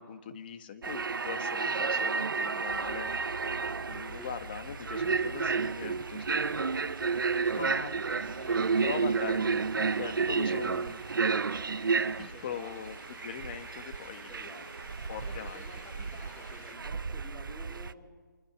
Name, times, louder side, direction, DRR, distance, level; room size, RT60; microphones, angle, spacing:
voice 1, 0.0-3.1 3.9-6.7 7.5-7.9 8.2-9.7 9.9-11.0 12.2-14.3 15.1-15.6, left 7 dB, 25° left, 10 dB, 1.4 m, -41 dB
sound 1, 0.8-17.9, right 5 dB, 80° right, 0.9 m, -31 dB
sound 2, 2.7-16.7, equal, 40° left, 7.2 m, -49 dB
voice 2, 7.5-8.0 12.3-13.0 14.3-14.9 15.3-18.0, equal, 10° left, -3 dB, 3.5 m, -50 dB
28.0 x 25.0 x 6.0 m, 1.4 s
hypercardioid pair, 170°, 11 cm